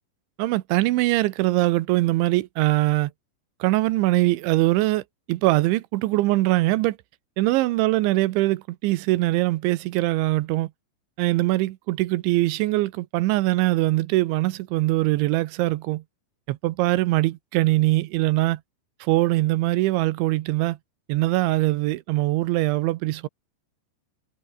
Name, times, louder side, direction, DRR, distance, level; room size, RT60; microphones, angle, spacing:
voice 1, 0.4-3.1 3.6-5.0 5.3-7.0 7.4-10.7 11.2-16.0 16.5-18.6 19.0-20.8 21.1-23.3, right 18 dB, 85° right, 3.3 m, -22 dB
omnidirectional pair, 5.3 m